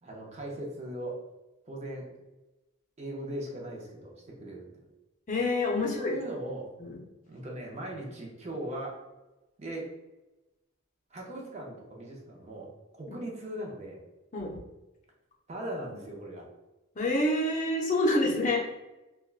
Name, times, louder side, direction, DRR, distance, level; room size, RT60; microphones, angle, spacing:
voice 1, 0.0-1.2 1.6-2.1 3.0-4.6 5.8-6.7 7.3-9.0 9.6-9.9 11.1-12.7 13.0-14.0 15.5-16.5, right 1 dB, 35° right, -1 dB, 0.6 m, -39 dB
voice 2, 5.3-6.1 6.8-7.0 14.3-14.6 17.0-18.7, left 2 dB, 40° left, -1 dB, 0.6 m, -27 dB
3.3 x 2.2 x 2.4 m, 1.0 s
head